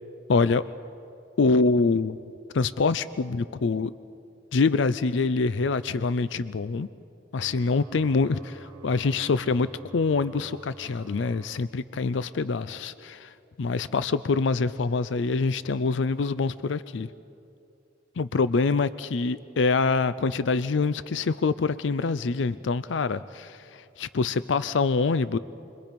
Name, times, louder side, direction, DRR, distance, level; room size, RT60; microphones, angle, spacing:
voice 1, 0.3-0.6 1.4-2.2 2.5-3.9 4.5-6.9 7.3-13.3 13.6-17.1 18.2-25.4, left 4 dB, 75° left, 15 dB, 0.5 m, -25 dB
sound 1, 7.4-11.5, right 1 dB, 25° right, 1.2 m, -48 dB
29.0 x 22.5 x 5.2 m, 2.6 s
head